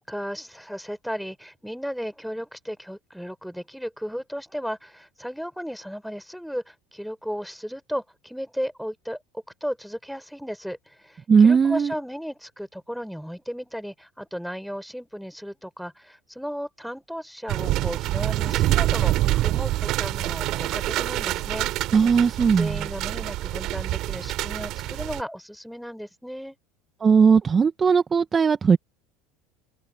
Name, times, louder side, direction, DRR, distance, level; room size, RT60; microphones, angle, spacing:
voice 1, 0.0-21.7 22.6-26.6, equal, ahead, 4.1 m, -35 dB
voice 2, 11.3-11.9 21.9-22.8 27.0-28.8, right 6 dB, 25° right, 1.6 m, -18 dB
sound 1, 17.5-25.2, right 16 dB, 50° right, 3.8 m, -26 dB
figure-of-eight pair, 75°, 0 cm